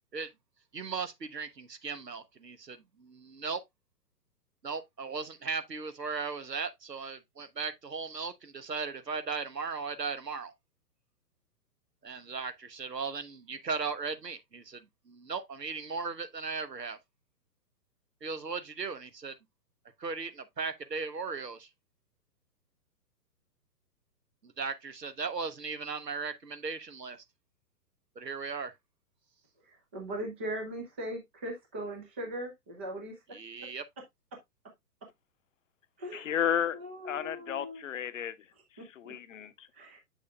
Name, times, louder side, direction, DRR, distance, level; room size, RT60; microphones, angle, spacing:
voice 1, 0.7-3.6 4.6-10.5 12.0-14.8 15.1-17.0 18.2-19.3 20.0-21.7 24.6-27.2 28.2-28.7 33.3-33.8, right 5 dB, 85° right, 1.2 m, -37 dB
voice 2, 29.9-33.1 36.0-36.4 36.7-37.8 38.8-39.1 39.7-40.0, right 1 dB, 10° right, 0.4 m, -39 dB
voice 3, 36.1-36.8 37.0-38.3 38.9-39.7, left 9 dB, 50° left, 0.8 m, -32 dB
7.1 x 6.5 x 2.3 m
figure-of-eight pair, 125°, 48 cm